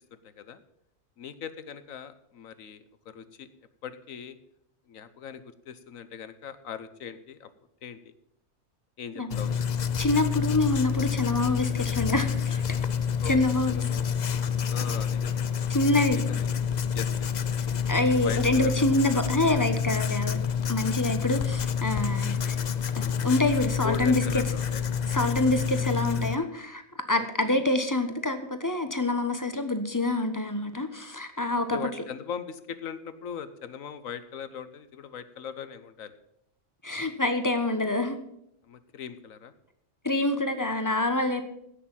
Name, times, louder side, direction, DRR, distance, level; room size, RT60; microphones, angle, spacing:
voice 1, 0.2-0.6 1.2-3.5 3.8-4.4 4.9-7.5 7.8-8.0 9.0-9.5 13.2-13.3 13.7-14.1 14.7-15.4 16.1-16.6 16.9-17.3 18.2-18.8 21.3-21.5 23.8-24.8 27.2-27.6 31.7-36.1 38.6-39.5, left 7 dB, 75° left, 13 dB, 1.3 m, -39 dB
Writing, 9.3-26.4, left 7 dB, 50° left, 0.5 m, -28 dB
voice 2, 10.0-12.8 13.2-13.8 15.7-16.2 17.9-20.4 20.7-22.6 23.0-24.4 25.1-26.8 27.1-31.8 36.8-38.2 40.0-41.4, left 2 dB, 15° left, 8 dB, 1.1 m, -26 dB
16.0 x 6.6 x 7.2 m, 0.75 s
omnidirectional pair, 1.4 m